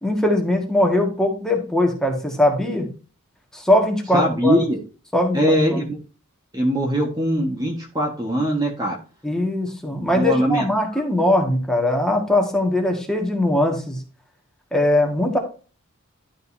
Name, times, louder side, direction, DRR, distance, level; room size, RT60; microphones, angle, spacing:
voice 1, 0.0-2.9 3.5-4.6 5.1-5.9 9.2-14.0 14.7-15.4, left 1 dB, 5° left, 1 dB, 1.8 m, -20 dB
voice 2, 4.1-4.8 5.3-6.0 6.5-9.0 10.0-10.7 10.9-11.0, equal, 20° right, 0 dB, 1.5 m, -21 dB
12.0 x 5.3 x 2.8 m, 0.36 s
head